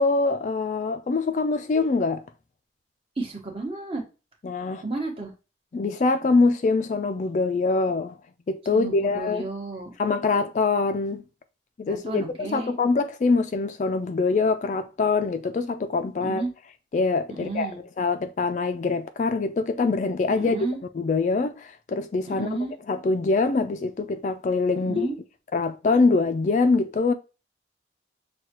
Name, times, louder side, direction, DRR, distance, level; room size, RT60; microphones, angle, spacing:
voice 1, 0.0-2.2 4.4-4.8 5.7-8.2 8.5-9.5 10.0-11.2 11.8-16.5 16.9-20.6 20.9-22.6 22.9-25.1 25.5-27.1, left 3 dB, 45° left, 0.3 m, -24 dB
voice 2, 3.2-4.0 4.8-5.3 8.7-9.9 11.9-12.7 16.2-16.5 17.3-17.8 20.3-20.8 22.3-22.7 24.8-25.2, right 3 dB, 30° right, 1.0 m, -32 dB
6.3 x 2.2 x 2.9 m
head